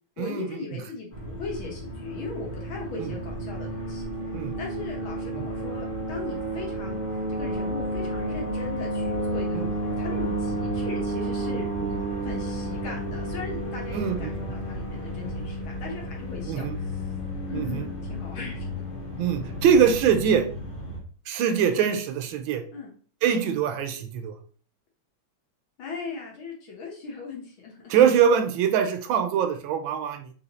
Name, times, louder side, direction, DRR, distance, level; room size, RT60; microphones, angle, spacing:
voice 1, 0.2-4.1 4.6-7.0 7.3-17.1 17.5-18.7 22.7-22.9 25.8-27.9, left 5 dB, 75° left, -1 dB, 2.1 m, -38 dB
sound 1, 1.1-21.0, right 1 dB, 35° left, 1.0 m, -32 dB
voice 2, 13.9-14.3 16.5-16.8 17.5-17.8 19.2-20.5 21.3-22.6 23.2-24.3 27.9-30.3, right 8 dB, 80° right, 7 dB, 1.4 m, -23 dB
4.1 x 3.0 x 4.0 m, 0.44 s
omnidirectional pair, 2.3 m